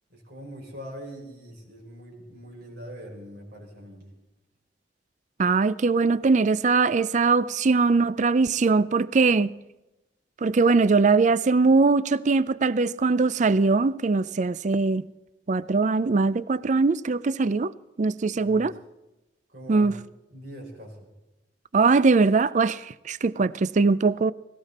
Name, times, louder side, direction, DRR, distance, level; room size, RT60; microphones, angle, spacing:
voice 1, 0.1-4.0 18.4-18.7 19.5-19.9 20.3-21.1, equal, 65° right, 6.0 m, -42 dB
voice 2, 5.4-9.5 10.4-15.0 15.5-17.7 18.0-18.7 19.7-19.9 21.7-24.3, right 4 dB, 45° right, 0.5 m, -21 dB
18.5 x 18.0 x 4.3 m
head